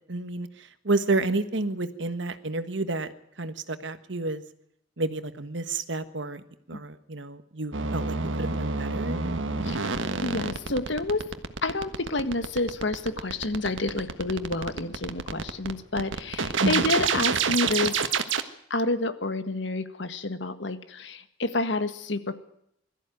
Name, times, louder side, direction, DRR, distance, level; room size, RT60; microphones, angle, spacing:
voice 1, 0.1-4.4 5.0-6.4 6.7-9.2 16.6-16.9, right 2 dB, 70° right, 11 dB, 1.5 m, -30 dB
sound 1, 7.7-18.4, right 5 dB, 85° right, 1.5 m, -28 dB
voice 2, 10.2-11.2 11.6-18.0 18.7-22.4, left 2 dB, 65° left, 10 dB, 1.7 m, -29 dB
21.5 x 14.0 x 9.3 m, 0.74 s
head